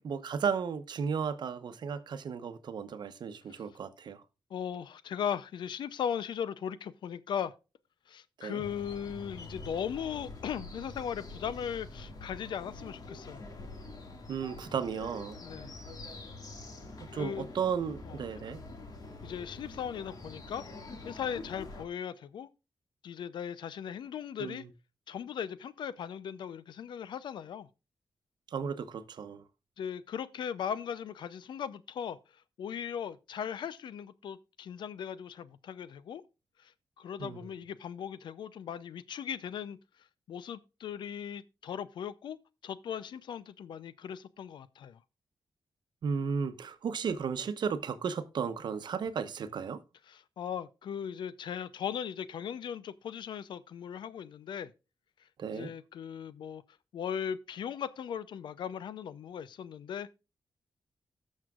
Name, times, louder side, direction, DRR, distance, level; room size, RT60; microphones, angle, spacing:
voice 1, 0.0-4.2 8.4-8.6 14.3-15.4 17.1-18.6 24.4-24.7 28.5-29.4 37.2-37.4 46.0-49.8 55.4-55.7, right 6 dB, 70° right, 0.9 m, -34 dB
voice 2, 4.5-7.5 8.1-13.5 15.4-15.7 17.1-17.5 18.1-18.2 19.2-20.6 21.0-22.5 23.0-24.6 25.1-27.7 29.8-32.2 32.6-36.2 36.6-36.7 37.0-39.8 40.3-42.4 42.6-45.0 50.1-54.7 55.5-56.6 56.9-60.1, left 8 dB, 85° left, 0.5 m, -38 dB
sound 1, 8.6-21.9, left 2 dB, 55° left, 1.9 m, -46 dB
18.0 x 6.4 x 2.4 m
cardioid pair, 100°, 8 cm